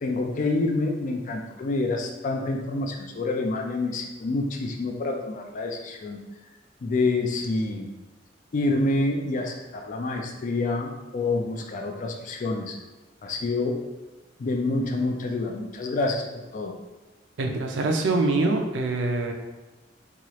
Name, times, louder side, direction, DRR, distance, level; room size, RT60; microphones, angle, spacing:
voice 1, 0.0-6.2 6.8-7.9 8.5-12.8 13.2-13.8 14.4-16.7, left 2 dB, 45° left, 3 dB, 0.3 m, -27 dB
voice 2, 17.4-19.3, right 2 dB, 75° right, 3 dB, 0.4 m, -24 dB
2.9 x 2.3 x 3.0 m, 1.1 s
head